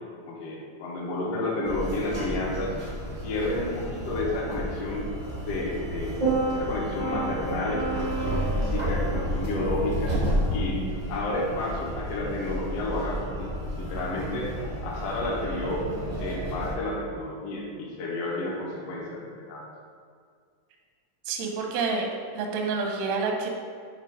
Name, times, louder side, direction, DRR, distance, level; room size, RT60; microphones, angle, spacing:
voice 1, 0.2-2.7 3.2-5.1 5.4-10.2 10.5-13.5 13.7-14.5 14.8-15.8 16.2-19.7, left 2 dB, 70° left, -3 dB, 1.5 m, -31 dB
sound 1, 1.6-16.7, right 1 dB, 50° right, 0.5 m, -30 dB
voice 2, 21.3-22.1 22.3-23.5, right 4 dB, 80° right, 1 dB, 1.6 m, -28 dB
8.3 x 3.1 x 4.9 m, 2.1 s
omnidirectional pair, 4.1 m